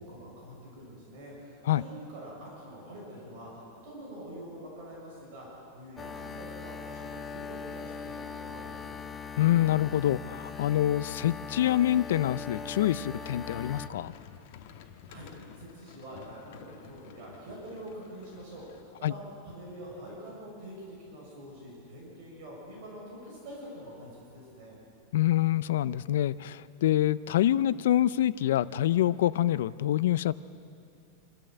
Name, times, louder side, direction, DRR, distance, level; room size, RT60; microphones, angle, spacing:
voice 1, 0.0-9.0 15.1-24.7, equal, 45° right, -4 dB, 6.7 m, -45 dB
sound 1, 6.0-13.9, left 5 dB, 15° left, 0.6 m, -40 dB
voice 2, 9.4-14.1 19.0-19.1 25.1-30.3, left 12 dB, 75° left, 17 dB, 0.5 m, -26 dB
sound 2, 13.2-18.8, left 8 dB, 50° left, 1.3 m, -52 dB
26.5 x 13.5 x 7.9 m, 2.6 s
supercardioid pair, 175°, 0 cm